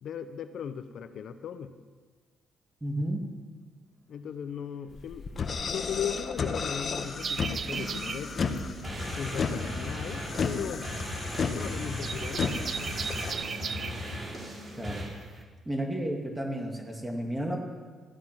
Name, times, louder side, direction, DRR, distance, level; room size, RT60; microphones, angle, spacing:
voice 1, 0.0-1.7 4.1-5.4 5.7-8.7 9.2-10.9 11.5-12.5, left 8 dB, 65° left, 9 dB, 0.9 m, -37 dB
voice 2, 2.8-3.3 14.7-15.0 15.3-17.6, right 1 dB, 10° right, 1 dB, 2.3 m, -32 dB
sound 1, 4.9-13.3, left 5 dB, 45° left, 1.2 m, -33 dB
sound 2, 6.8-15.0, equal, 30° right, 4.8 m, -38 dB
sound 3, 7.2-15.4, right 6 dB, 50° right, 0.6 m, -38 dB
15.5 x 11.5 x 6.1 m, 1.5 s
cardioid pair, 90°, 0 cm